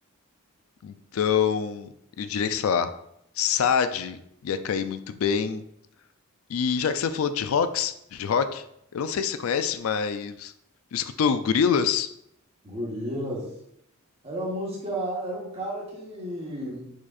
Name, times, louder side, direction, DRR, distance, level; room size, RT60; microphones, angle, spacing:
voice 1, 0.8-1.9 2.2-2.9 3.4-5.6 6.5-8.6 8.9-10.5 10.9-12.1, left 7 dB, 70° left, 10 dB, 0.4 m, -25 dB
voice 2, 12.6-13.5 14.2-16.9, equal, 30° right, -4 dB, 1.2 m, -32 dB
4.8 x 4.2 x 2.4 m, 0.74 s
head